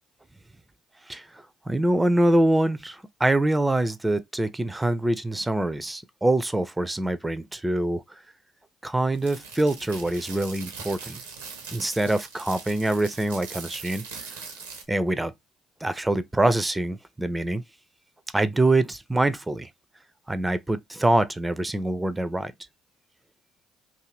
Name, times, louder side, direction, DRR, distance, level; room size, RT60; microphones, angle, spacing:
voice 1, 1.1-8.2 8.8-11.2 11.7-14.0 14.9-15.3 15.8-17.6 18.3-19.7 20.3-22.5, right 1 dB, 15° right, 0.4 m, -24 dB
sound 1, 9.1-14.9, right 5 dB, 80° right, 0.6 m, -41 dB
2.6 x 2.5 x 2.9 m
figure-of-eight pair, 50°, 0 cm